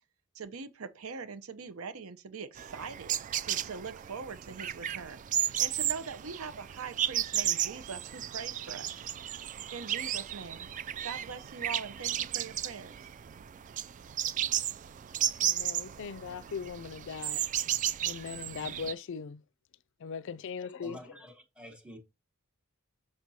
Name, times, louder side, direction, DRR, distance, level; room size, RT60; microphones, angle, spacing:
voice 1, 0.3-3.2 3.4-9.1 9.7-10.7 11.0-12.9, right 5 dB, 80° right, 0.7 m, -42 dB
sound 1, 2.6-18.9, right 11 dB, 35° right, 0.3 m, -34 dB
voice 2, 15.4-17.4 18.0-19.4 20.0-21.2, left 6 dB, 60° left, 0.4 m, -39 dB
voice 3, 20.8-22.0, left 1 dB, 5° right, 1.1 m, -48 dB
6.3 x 6.2 x 2.7 m
head